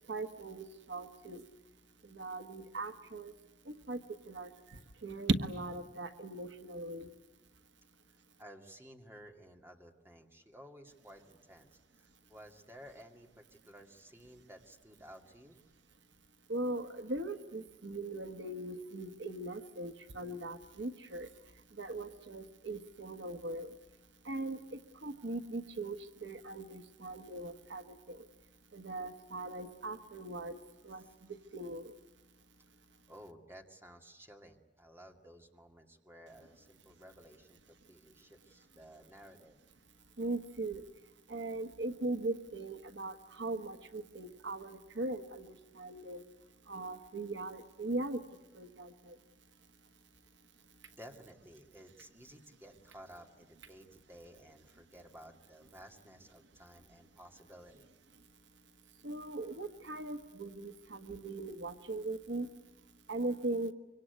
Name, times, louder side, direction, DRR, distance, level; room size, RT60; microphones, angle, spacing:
voice 1, 0.1-1.4 2.1-3.3 3.7-4.0 4.3-4.5 5.0-7.1 16.5-21.3 21.8-23.7 24.2-28.2 28.7-31.0 31.5-31.9 40.2-40.8 41.3-46.2 46.7-48.2 48.5-49.1 59.0-62.5 63.1-63.7, right 2 dB, 75° right, 7 dB, 1.5 m, -39 dB
voice 2, 8.4-11.7 12.0-15.6 30.8-31.1 33.1-39.6 50.9-57.9, equal, 10° right, 2 dB, 2.3 m, -55 dB
25.5 x 24.0 x 9.4 m, 1.0 s
head